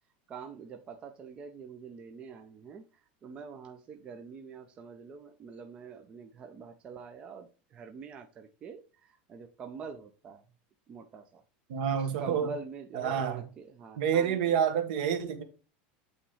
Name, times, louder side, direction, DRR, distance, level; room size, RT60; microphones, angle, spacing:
voice 1, 0.3-10.4 10.9-11.4 11.9-14.4, right 5 dB, 20° right, 0.5 m, -45 dB
voice 2, 11.7-12.5 12.9-13.4 14.0-15.4, right 8 dB, 60° right, 1.4 m, -28 dB
8.6 x 3.0 x 4.8 m
supercardioid pair, 175°, 5 cm